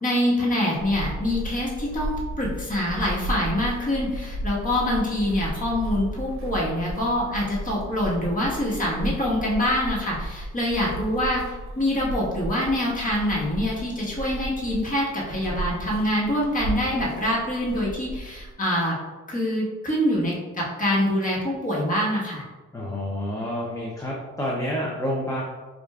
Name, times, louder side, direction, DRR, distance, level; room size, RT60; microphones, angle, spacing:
voice 1, 0.0-11.4 11.8-18.9 19.3-22.4, left 1 dB, 25° left, -5 dB, 1.4 m, -25 dB
sound 1, 0.7-18.5, right 1 dB, 45° right, 0.9 m, -34 dB
voice 2, 22.7-25.4, equal, 10° left, -4 dB, 0.6 m, -29 dB
5.0 x 2.5 x 2.3 m, 1.3 s
cardioid pair, 90°, 30 cm